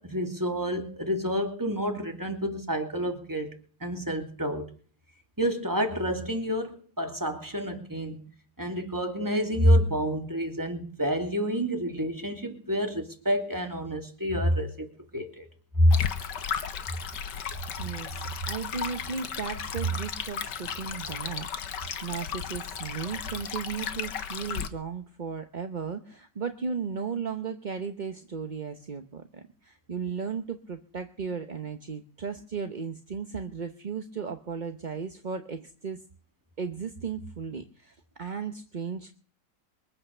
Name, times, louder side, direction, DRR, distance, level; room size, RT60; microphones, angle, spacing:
voice 1, 0.0-4.7 5.4-8.3 8.6-15.5 15.8-15.9, equal, 10° right, 2.8 m, -28 dB
Stream, 15.9-24.7, left 7 dB, 75° left, 1.8 m, -35 dB
voice 2, 17.8-21.5 21.7-36.0 36.6-39.1, right 6 dB, 35° right, 0.8 m, -35 dB
23.0 x 8.4 x 6.6 m
omnidirectional pair, 1.9 m